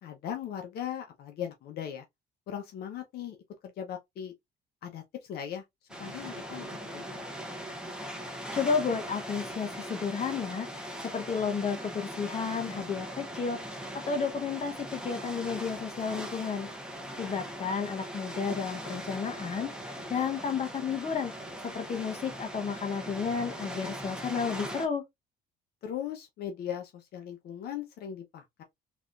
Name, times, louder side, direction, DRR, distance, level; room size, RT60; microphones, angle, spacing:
voice 1, 0.0-2.0 2.5-3.4 3.6-4.3 4.8-5.6 6.0-7.2 25.8-28.6, left 9 dB, 65° left, 0.9 m, -38 dB
sound 1, 5.9-24.9, equal, 5° right, 1.0 m, -40 dB
voice 2, 8.5-13.6 13.9-16.7 17.2-21.3 21.6-25.0, left 6 dB, 40° left, 1.0 m, -32 dB
4.0 x 2.9 x 2.5 m
cardioid pair, 110°, 17 cm